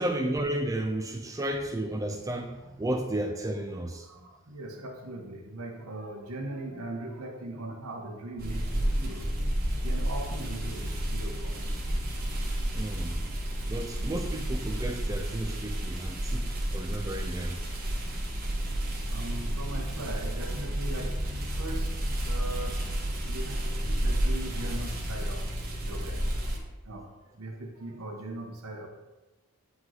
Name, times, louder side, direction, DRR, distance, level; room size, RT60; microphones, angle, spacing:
voice 1, 0.0-4.1 12.7-13.2 13.7-17.6, right 1 dB, 15° right, 0.3 m, -33 dB
voice 2, 4.0-9.3 9.8-11.8 18.4-18.5 19.1-21.2 21.6-22.8 23.3-26.6 26.8-28.9, right 1 dB, 80° right, 1.0 m, -40 dB
sound 1, 8.4-26.6, right 1 dB, 45° right, 1.3 m, -31 dB
9.2 x 3.1 x 3.9 m
head